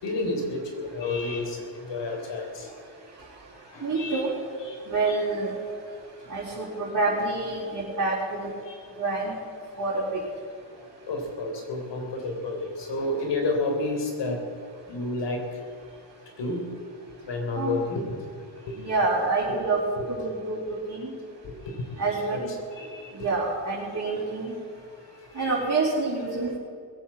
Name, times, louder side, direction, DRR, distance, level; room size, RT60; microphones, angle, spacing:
voice 1, 0.0-2.7 3.7-4.2 4.6-4.8 8.7-8.8 10.8-14.4 14.9-15.6 16.4-16.6 17.2-18.0 18.7-18.8 20.0-20.1 21.4-21.8 22.3-22.4 22.8-23.3 25.3-25.5, left 2 dB, 65° left, 3 dB, 3.7 m, -30 dB
voice 2, 3.8-4.4 4.9-5.6 6.3-8.5 9.0-9.3 9.8-10.2 17.5-17.8 18.8-19.8 20.1-21.1 22.0-22.5 23.1-24.5 25.3-26.6, right 3 dB, 40° right, -7 dB, 4.2 m, -27 dB
20.5 x 8.3 x 7.3 m, 2.2 s
supercardioid pair, 60°, 45 cm